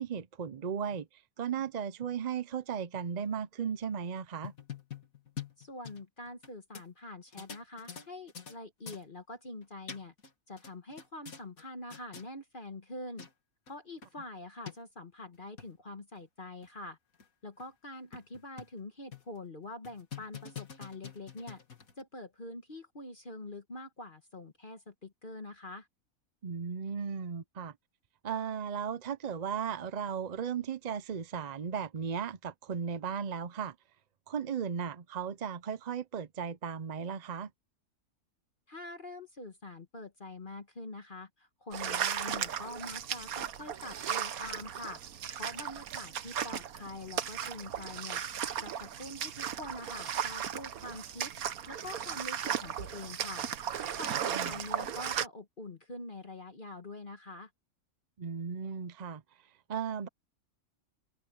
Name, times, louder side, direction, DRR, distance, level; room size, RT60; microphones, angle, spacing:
voice 1, 0.0-4.5 26.4-27.7 28.2-33.7 34.3-37.5 54.3-54.6 58.2-59.2 59.7-60.1, right 7 dB, 50° right, 0.5 m, -36 dB
sound 1, 4.2-6.5 6.7-6.8 7.3-8.6 8.9-9.0 9.6-10.3 10.6-11.6 11.9-12.3 12.9-13.0 13.2-13.3 13.7-13.8 14.0-14.1 14.7-14.8 15.3-15.7 16.2-16.3 16.6-16.7 17.2-17.3 17.6-17.7 18.1-18.8 19.1-19.4 19.8-22.0, left 7 dB, 70° left, 2.7 m, -45 dB
voice 2, 5.6-10.1 10.5-13.3 13.7-17.0 17.4-21.6 22.0-25.9 38.7-45.0 45.4-48.2 48.6-53.5 54.0-57.5, left 2 dB, 35° left, 1.6 m, -45 dB
sound 2, 41.7-55.3, right 9 dB, 70° right, 1.4 m, -36 dB
omnidirectional pair, 1.6 m